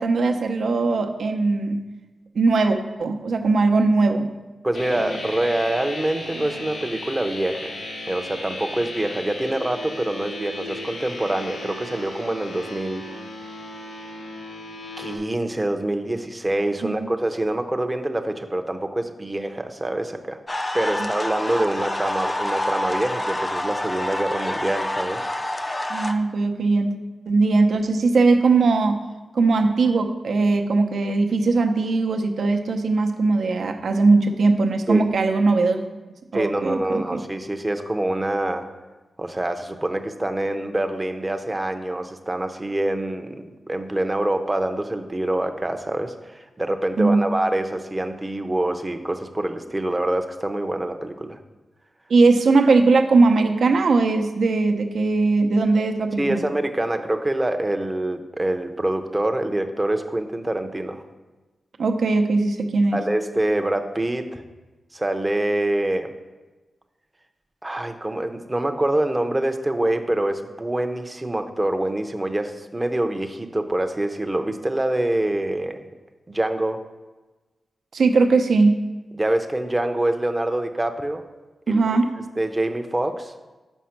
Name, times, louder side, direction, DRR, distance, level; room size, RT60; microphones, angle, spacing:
voice 1, 0.0-1.8 2.3-4.3 16.8-17.1 25.9-26.9 27.3-29.0 29.3-35.8 36.3-37.2 47.0-47.2 52.1-56.4 61.8-63.0 77.9-78.8 81.7-82.1, right 3 dB, 75° right, 5 dB, 0.7 m, -19 dB
voice 2, 4.6-7.8 8.1-13.1 15.0-20.4 20.7-25.3 34.9-35.0 36.3-38.6 39.2-51.4 56.2-61.0 62.9-64.4 64.9-66.1 67.6-75.9 76.3-76.8 79.2-81.2 81.7-81.8 82.4-83.3, right 1 dB, 20° right, 6 dB, 0.6 m, -25 dB
sound 1, 4.7-15.2, left 2 dB, 90° left, 1.3 m, -35 dB
sound 2, 20.5-26.1, left 1 dB, 25° left, 0.5 m, -27 dB
6.3 x 5.1 x 5.8 m, 1.2 s
wide cardioid pair, 90°, 0 cm